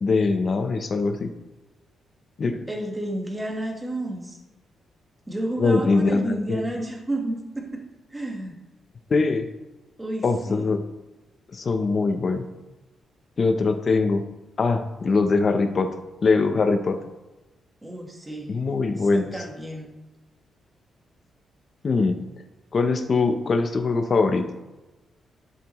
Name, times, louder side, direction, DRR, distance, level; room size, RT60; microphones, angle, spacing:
voice 1, 0.0-1.3 2.4-2.6 5.6-6.6 9.1-9.5 10.2-10.8 11.5-12.4 13.4-14.2 14.6-15.9 16.2-17.0 18.5-19.3 21.8-22.2 22.7-24.5, left 3 dB, 35° left, 8 dB, 0.6 m, -22 dB
voice 2, 2.7-4.4 5.3-7.8 8.1-8.6 10.0-10.7 17.8-18.6 19.3-19.9, right 1 dB, 10° right, 1 dB, 1.3 m, -31 dB
11.0 x 7.0 x 3.0 m, 1.1 s
wide cardioid pair, 165°, 0 cm